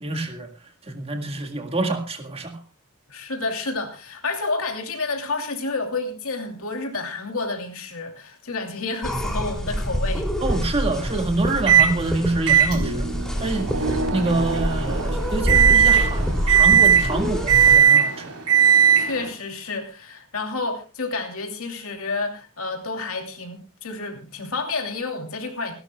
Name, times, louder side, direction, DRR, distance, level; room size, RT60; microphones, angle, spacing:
voice 1, 0.0-0.5 0.9-2.5 10.4-13.1 13.4-18.3, right 2 dB, 25° right, 2.0 m, -26 dB
voice 2, 3.1-10.3 19.0-25.7, left 3 dB, 65° left, 2.9 m, -30 dB
sound 1, 9.0-17.8, equal, 5° left, 3.0 m, -26 dB
Microwave oven, 11.7-11.9 12.5-19.3, right 8 dB, 85° right, 4.0 m, -18 dB
28.0 x 12.5 x 2.3 m
head